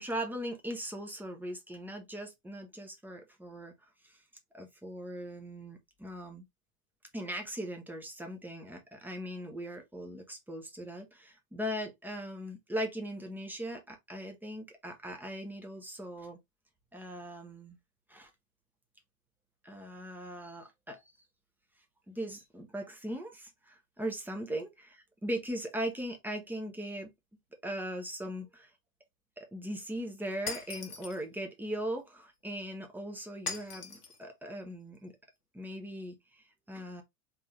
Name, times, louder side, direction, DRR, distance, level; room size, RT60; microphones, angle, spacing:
voice 1, 0.0-3.7 4.0-4.2 4.5-6.5 7.1-16.4 16.9-17.8 18.1-18.3 19.6-21.0 22.1-27.1 27.6-28.7 29.4-35.1 35.5-37.0, equal, 5° right, 0.7 m, -39 dB
Shatter, 30.5-31.2 33.5-34.2, left 5 dB, 85° left, 0.9 m, -39 dB
3.5 x 3.2 x 3.2 m
figure-of-eight pair, 85°, 45 cm